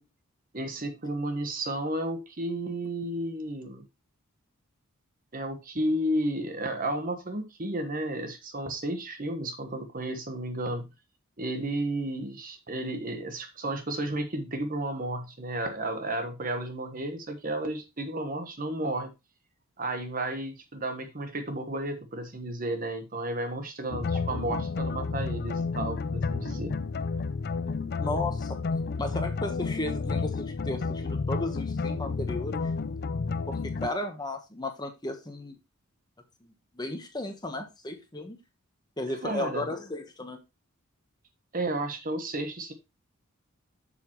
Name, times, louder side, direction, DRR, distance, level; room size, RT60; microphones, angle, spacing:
voice 1, 0.5-3.8 5.3-10.9 11.4-19.1 19.8-26.8 39.2-39.7 41.5-42.7, right 1 dB, 40° right, 7 dB, 1.2 m, -32 dB
sound 1, 23.9-33.9, left 4 dB, 45° left, 0.4 m, -31 dB
voice 2, 28.0-28.6 29.0-32.7 33.5-35.6 36.4-38.4 39.0-40.4, left 2 dB, 20° left, 5 dB, 1.2 m, -34 dB
7.5 x 7.0 x 3.0 m, 0.25 s
head